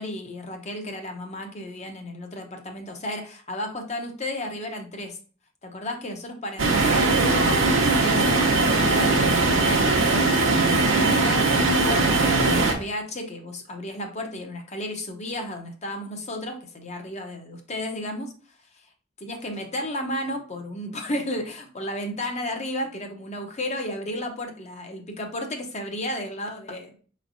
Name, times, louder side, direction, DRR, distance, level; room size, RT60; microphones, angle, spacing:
voice 1, 0.0-5.2 5.6-7.1 7.6-10.3 10.8-18.3 19.2-27.0, left 1 dB, 35° left, 4 dB, 0.8 m, -33 dB
sound 1, 6.6-12.7, right 3 dB, 70° right, 0.9 m, -20 dB
5.1 x 3.2 x 2.6 m, 0.40 s
head